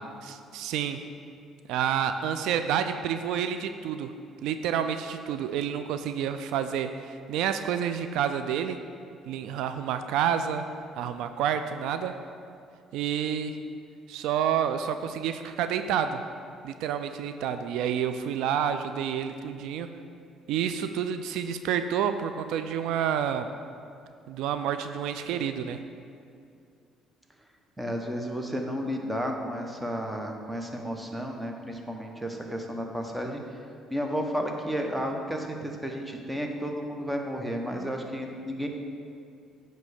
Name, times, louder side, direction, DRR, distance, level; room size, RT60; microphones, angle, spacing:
voice 1, 0.2-1.0 1.7-4.1 4.4-8.8 9.3-10.7 11.0-12.2 12.9-13.6 14.1-16.2 16.6-19.9 20.5-23.5 24.3-25.8, right 8 dB, 80° right, 9 dB, 0.3 m, -29 dB
voice 2, 27.8-33.4 33.9-38.7, equal, 10° right, 2 dB, 1.0 m, -32 dB
9.1 x 3.2 x 6.5 m, 2.4 s
cardioid pair, 90°, 0 cm